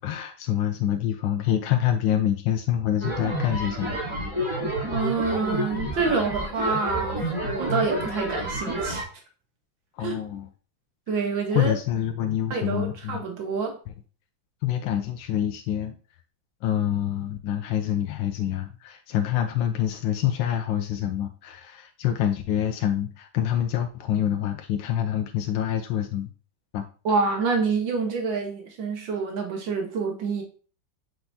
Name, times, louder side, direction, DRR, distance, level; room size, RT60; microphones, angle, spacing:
voice 1, 0.0-4.0 10.0-10.5 11.5-13.2 14.6-16.0 16.6-26.3 26.7-26.8, left 10 dB, 85° left, 6 dB, 1.3 m, -26 dB
sound 1, 3.0-9.0, right 1 dB, 15° right, 2.8 m, -29 dB
voice 2, 4.9-9.1 10.0-10.2 11.1-11.7 12.5-13.8 27.1-30.4, right 4 dB, 80° right, 3 dB, 1.9 m, -27 dB
7.8 x 4.5 x 2.7 m, 0.38 s
omnidirectional pair, 2.1 m